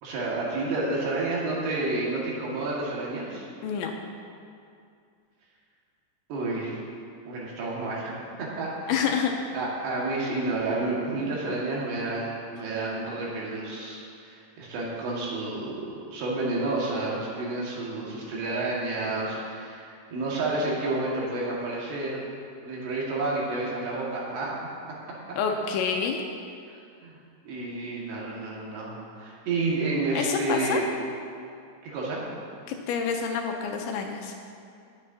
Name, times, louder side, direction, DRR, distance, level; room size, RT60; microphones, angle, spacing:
voice 1, 0.0-3.5 6.3-6.8 7.3-9.1 9.5-22.3 22.6-24.5 26.7-27.2 27.4-30.9 31.8-32.2, right 2 dB, 65° right, -5 dB, 3.8 m, -30 dB
voice 2, 3.6-3.9 8.9-9.3 25.4-26.3 30.1-30.8 32.7-34.3, left 6 dB, 80° left, 3 dB, 2.9 m, -27 dB
19.0 x 9.5 x 2.8 m, 2.4 s
omnidirectional pair, 5.5 m